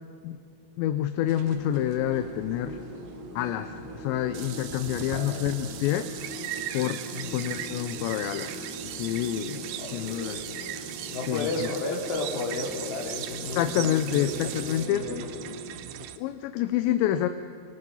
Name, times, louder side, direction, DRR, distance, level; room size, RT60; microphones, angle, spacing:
voice 1, 0.8-2.8 3.4-6.2 6.7-7.0 7.3-8.6 9.0-9.7 9.9-10.4 11.3-11.7 13.4-15.3 16.0-17.3, left 12 dB, 80° left, 9 dB, 2.9 m, -28 dB
sound 1, 1.2-15.6, left 1 dB, 20° left, 7.9 m, -42 dB
sound 2, 1.3-16.2, right 12 dB, 85° right, 2.1 m, -41 dB
sound 3, 4.3-14.9, right 10 dB, 70° right, 2.3 m, -42 dB
voice 2, 5.1-5.4 7.1-7.4 9.8-10.4 11.1-15.2, left 3 dB, 60° left, -1 dB, 4.8 m, -33 dB
26.5 x 24.5 x 5.5 m, 2.3 s
omnidirectional pair, 5.3 m